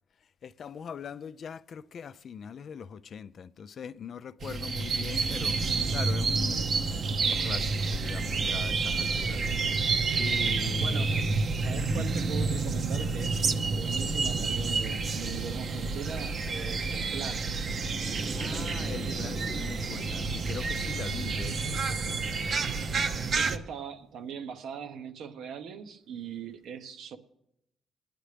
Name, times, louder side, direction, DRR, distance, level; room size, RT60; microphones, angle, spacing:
voice 1, 0.4-6.7 7.2-9.4 10.2-11.3 11.8-12.0 18.3-22.8, left 7 dB, 55° left, 0.4 m, -42 dB
sound 1, 4.4-23.6, right 4 dB, 50° right, 0.8 m, -29 dB
voice 2, 9.2-9.6 10.8-11.3 11.6-17.4 19.1-19.3 23.3-27.2, right 7 dB, 75° right, 0.9 m, -40 dB
20.5 x 10.0 x 3.4 m
cardioid pair, 90°, 0 cm